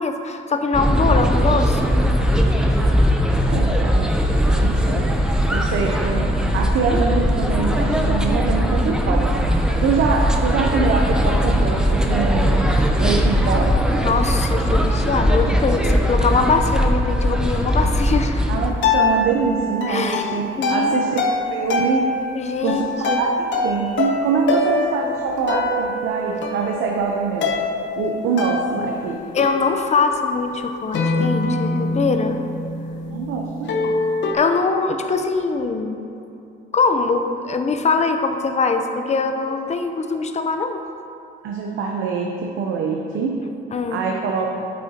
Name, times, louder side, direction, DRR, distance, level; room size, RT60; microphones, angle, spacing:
voice 1, 0.0-1.9 14.0-18.4 19.9-20.9 22.3-23.2 24.5-24.6 25.0-25.2 29.3-32.4 34.3-36.0 36.7-40.8 43.7-44.0, left 4 dB, 35° left, 6 dB, 0.7 m, -22 dB
sound 1, 0.7-18.7, equal, 5° right, 0.7 m, -19 dB
voice 2, 3.3-4.2 4.5-6.3 6.5-12.7 13.0-13.8 18.5-21.2 21.5-22.1 22.6-27.5 28.0-29.2 33.1-33.7 41.4-43.4 43.7-44.6, right 5 dB, 80° right, 0 dB, 0.7 m, -24 dB
sound 2, 18.6-34.3, left 2 dB, 65° left, 0.8 m, -24 dB
8.4 x 8.4 x 2.9 m, 2.6 s
cardioid pair, 90°, 20 cm